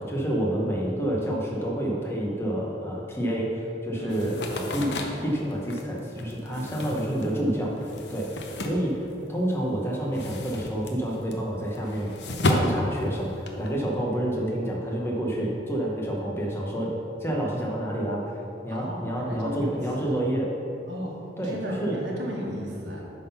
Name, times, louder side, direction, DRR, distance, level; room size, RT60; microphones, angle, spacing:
voice 1, 0.0-4.9 5.2-8.9 9.3-12.1 12.4-16.9 17.2-18.3 18.6-20.5 21.4-21.9, right 1 dB, 15° left, -3 dB, 0.9 m, -28 dB
voice 2, 3.9-4.4 6.5-6.8 18.7-20.2 20.9-23.0, equal, 85° right, -2 dB, 1.3 m, -36 dB
sound 1, 4.1-9.5 9.8-13.7, left 1 dB, 75° left, 0.7 m, -32 dB
8.3 x 3.9 x 5.5 m, 2.8 s
head